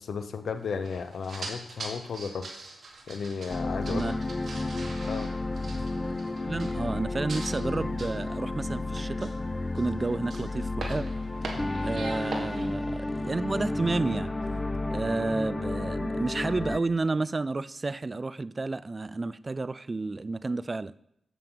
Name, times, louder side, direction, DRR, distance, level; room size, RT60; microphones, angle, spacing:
voice 1, 0.0-2.5 3.1-4.1 5.1-5.3 12.3-12.4, left 5 dB, 70° left, 9 dB, 0.8 m, -34 dB
sound 1, 0.8-7.0 7.3-7.7 8.0-8.3 8.7-10.0 10.2-12.7, right 3 dB, 60° right, 2.0 m, -42 dB
sound 2, 3.5-16.8, left 2 dB, 30° left, 0.8 m, -32 dB
voice 2, 3.9-4.2 6.4-9.3 9.7-11.1 11.8-14.3 14.9-20.9, right 3 dB, 35° right, 17 dB, 0.4 m, -31 dB
7.7 x 7.0 x 5.9 m, 0.75 s
cardioid pair, 50°, 0 cm